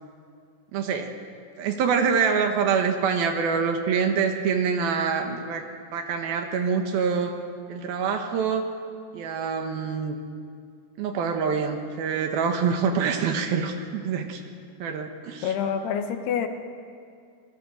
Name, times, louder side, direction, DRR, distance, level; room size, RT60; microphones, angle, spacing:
voice 1, 0.7-1.1 1.6-5.6 5.9-7.3 7.7-8.6 9.1-10.2 11.0-14.4 14.8-15.5, right 6 dB, 70° right, 5 dB, 3.0 m, -25 dB
voice 2, 15.4-16.5, left 7 dB, 80° left, 6 dB, 3.3 m, -27 dB
25.5 x 19.5 x 6.5 m, 2.3 s
omnidirectional pair, 4.8 m